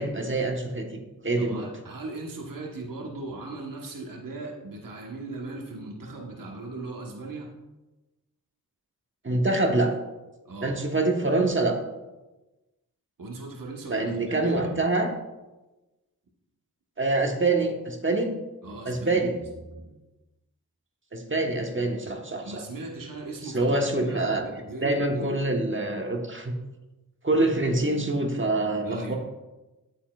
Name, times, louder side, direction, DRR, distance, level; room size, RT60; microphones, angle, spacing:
voice 1, 0.0-1.6 9.2-9.9 10.6-11.8 13.9-15.1 17.0-18.3 18.8-19.3 21.1-22.6 23.4-24.4 24.8-26.5 27.2-29.2, right 2 dB, 30° right, 3 dB, 1.3 m, -25 dB
voice 2, 1.4-7.5 10.4-10.8 13.2-14.8 18.6-19.3 19.7-20.0 22.4-25.2 28.8-29.2, right 2 dB, 60° right, 0 dB, 1.4 m, -38 dB
9.1 x 7.2 x 2.4 m, 1.1 s
cardioid pair, 40°, 38 cm